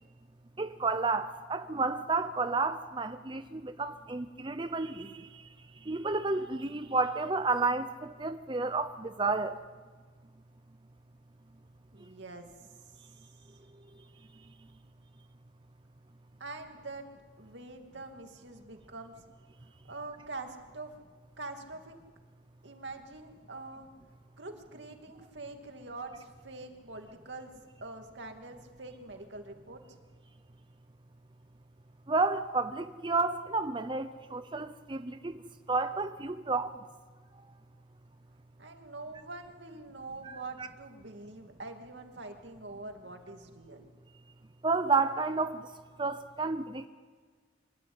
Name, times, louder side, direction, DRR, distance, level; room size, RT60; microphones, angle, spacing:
voice 1, 0.6-5.4 5.8-9.6 32.1-35.4 35.7-36.7 37.4-37.5 40.2-40.4 44.6-45.7 46.0-46.9, right 3 dB, 25° right, 0.7 m, -31 dB
voice 2, 11.9-12.5 16.4-17.1 17.4-19.1 19.8-20.9 21.4-22.0 22.6-23.9 24.4-27.5 27.8-29.8 38.6-43.8, right 3 dB, 80° right, 2.4 m, -44 dB
25.0 x 13.0 x 9.6 m
head